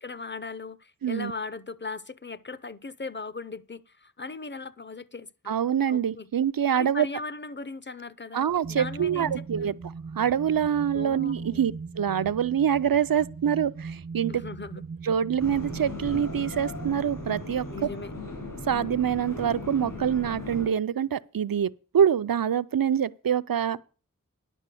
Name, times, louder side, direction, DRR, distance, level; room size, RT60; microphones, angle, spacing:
voice 1, 0.0-5.5 5.9-6.3 6.7-9.8 10.9-11.6 14.3-14.8 17.7-18.1, left 3 dB, 35° left, 0.6 m, -38 dB
voice 2, 1.0-1.3 5.5-7.1 8.3-14.4 15.0-17.9 18.7-23.8, right 8 dB, 85° right, 0.5 m, -25 dB
sound 1, 8.6-17.4, right 4 dB, 30° right, 0.4 m, -39 dB
sound 2, 15.4-20.7, left 2 dB, 70° left, 6.0 m, -37 dB
11.0 x 5.5 x 7.6 m
wide cardioid pair, 50°, 34 cm